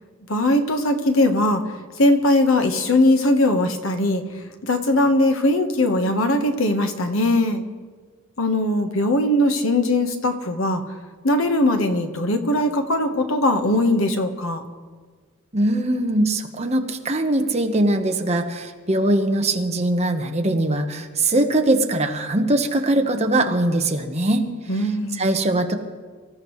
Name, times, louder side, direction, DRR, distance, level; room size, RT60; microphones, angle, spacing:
voice 1, 0.3-1.6 2.0-4.2 4.6-7.6 8.4-10.8 11.2-14.6 24.7-25.3, left 1 dB, 75° left, 6 dB, 1.3 m, -20 dB
voice 2, 15.5-24.5 24.8-25.7, right 1 dB, 30° right, 4 dB, 1.2 m, -21 dB
24.5 x 14.5 x 3.2 m, 1.5 s
head